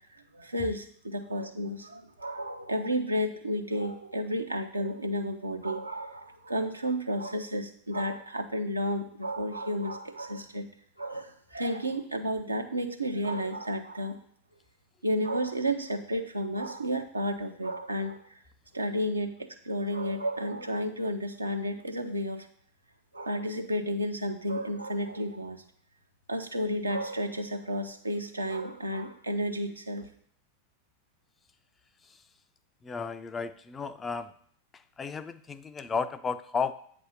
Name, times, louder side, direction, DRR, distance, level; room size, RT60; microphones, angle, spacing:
voice 1, 0.3-10.7 11.0-14.2 15.0-18.2 18.7-22.5 23.1-25.6 26.3-30.1, equal, 80° right, 5 dB, 0.6 m, -32 dB
voice 2, 32.8-34.3 34.7-36.7, left 5 dB, 20° left, 11 dB, 0.3 m, -33 dB
8.0 x 2.7 x 5.5 m, 0.63 s
figure-of-eight pair, 90°, 0 cm